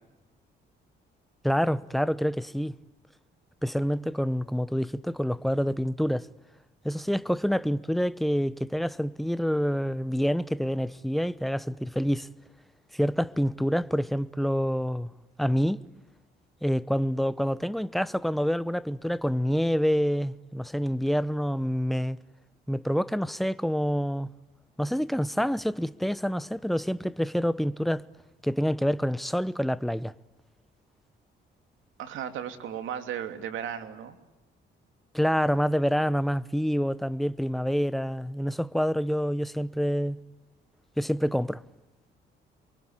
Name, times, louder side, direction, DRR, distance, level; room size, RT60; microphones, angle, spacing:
voice 1, 1.4-2.7 3.6-6.3 6.8-12.3 12.9-15.1 15.4-15.8 16.6-22.2 22.7-24.3 24.8-28.0 28.4-30.1 35.1-40.2 41.0-41.6, equal, ahead, 0.9 m, -27 dB
voice 2, 32.0-34.2, right 9 dB, 80° right, 2.8 m, -35 dB
28.5 x 24.0 x 8.8 m
cardioid pair, 90°, 20 cm